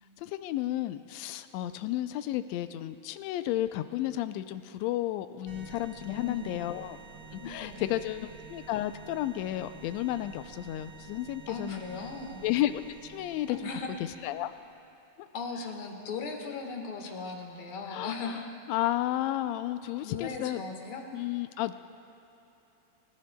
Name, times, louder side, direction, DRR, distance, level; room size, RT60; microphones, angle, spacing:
voice 1, 0.2-7.0 7.3-11.8 12.4-13.6 14.2-14.5 17.9-18.4 18.7-20.6 21.1-21.7, left 14 dB, 80° left, 10 dB, 1.7 m, -32 dB
sound 1, 5.5-14.9, right 5 dB, 65° right, 2.8 m, -49 dB
voice 2, 6.1-6.7 7.4-8.1 11.5-12.5 13.5-13.9 15.3-18.4 19.5-19.6 20.0-21.1, left 4 dB, 50° left, 1 dB, 2.1 m, -38 dB
29.5 x 14.5 x 2.3 m, 3.0 s
omnidirectional pair, 3.4 m